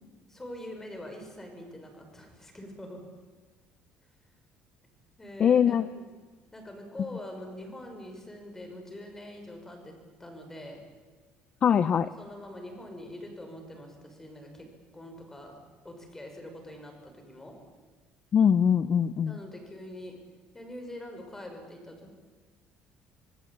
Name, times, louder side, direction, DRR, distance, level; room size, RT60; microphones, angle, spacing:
voice 1, 0.3-3.0 5.2-6.0 6.5-9.9 10.2-10.8 12.2-14.7 14.9-15.6 15.8-17.6 19.3-20.1 20.5-22.1, left 1 dB, 10° left, 4 dB, 6.0 m, -44 dB
voice 2, 5.4-5.9 11.6-12.1 18.3-19.4, left 8 dB, 40° left, 13 dB, 0.7 m, -22 dB
27.0 x 18.5 x 8.6 m, 1.3 s
cardioid pair, 135°, 3 cm